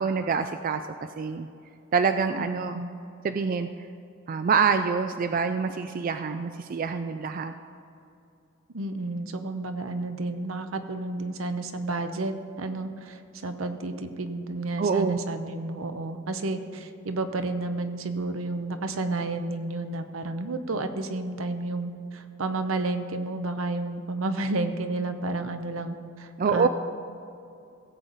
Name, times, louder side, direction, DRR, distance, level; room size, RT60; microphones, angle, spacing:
voice 1, 0.0-1.5 1.9-2.8 3.2-3.7 4.3-7.5 14.8-15.2 26.4-26.7, right 5 dB, 40° right, 9 dB, 0.3 m, -26 dB
voice 2, 2.4-2.9 8.7-26.7, right 2 dB, 80° right, 8 dB, 0.8 m, -31 dB
17.0 x 7.8 x 4.0 m, 2.6 s
head